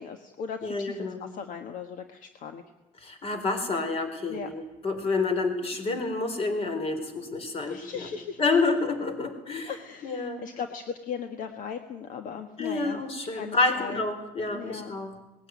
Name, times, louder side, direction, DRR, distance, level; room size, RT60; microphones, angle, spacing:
voice 1, 0.0-2.6 4.3-4.5 7.7-8.4 9.7-13.0 13.3-14.0 14.5-15.0, left 7 dB, 65° left, 6 dB, 1.5 m, -38 dB
voice 2, 0.6-1.2 3.0-8.1 8.4-9.7 10.0-10.4 12.6-15.2, left 3 dB, 40° left, 7 dB, 4.2 m, -28 dB
20.0 x 16.0 x 9.5 m, 1.1 s
cardioid pair, 125°, 15 cm